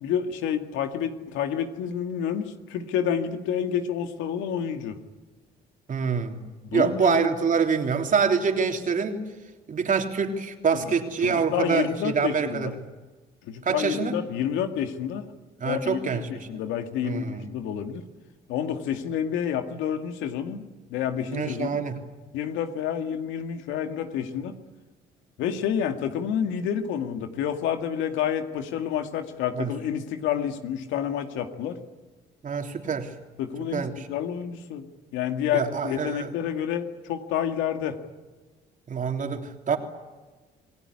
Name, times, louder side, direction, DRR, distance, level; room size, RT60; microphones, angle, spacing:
voice 1, 0.0-5.0 6.6-7.3 10.8-11.0 11.2-12.7 13.4-15.3 15.6-16.2 16.5-18.0 18.5-21.7 22.3-24.5 25.4-31.8 33.4-38.0, left 9 dB, 85° left, 7 dB, 2.2 m, -29 dB
voice 2, 5.9-6.4 6.7-9.2 9.7-12.7 13.6-14.2 15.6-16.6 17.0-17.5 21.3-22.0 29.6-29.7 32.4-33.1 33.7-34.1 35.5-36.3 38.9-39.8, right 6 dB, 45° right, 4 dB, 3.4 m, -26 dB
28.0 x 19.0 x 9.9 m, 1.3 s
cardioid pair, 95°, 19 cm